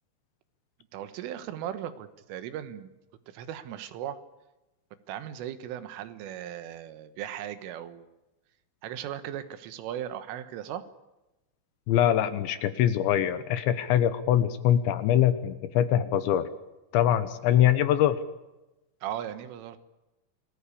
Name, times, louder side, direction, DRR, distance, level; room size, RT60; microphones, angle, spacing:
voice 1, 0.9-2.9 3.3-4.2 5.1-8.1 8.8-10.9 19.0-19.8, right 11 dB, 80° right, 11 dB, 3.8 m, -37 dB
voice 2, 11.9-16.5 16.9-18.2, left 11 dB, 75° left, 12 dB, 3.0 m, -23 dB
27.0 x 19.5 x 8.5 m, 1.0 s
omnidirectional pair, 5.8 m